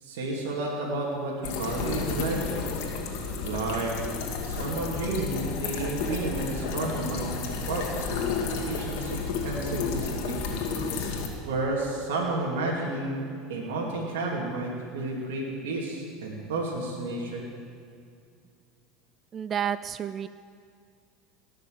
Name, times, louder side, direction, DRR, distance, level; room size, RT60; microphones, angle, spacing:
voice 1, 0.0-2.5 3.4-3.9 4.5-8.3 8.7-10.4 11.4-13.2 13.5-17.4, right 2 dB, 85° right, -3 dB, 2.7 m, -31 dB
sound 1, 1.4-11.3, left 5 dB, 70° left, 2.1 m, -32 dB
voice 2, 19.3-20.3, right 9 dB, 35° right, 14 dB, 0.4 m, -30 dB
18.5 x 6.6 x 7.9 m, 2.3 s
supercardioid pair, 110°, 0 cm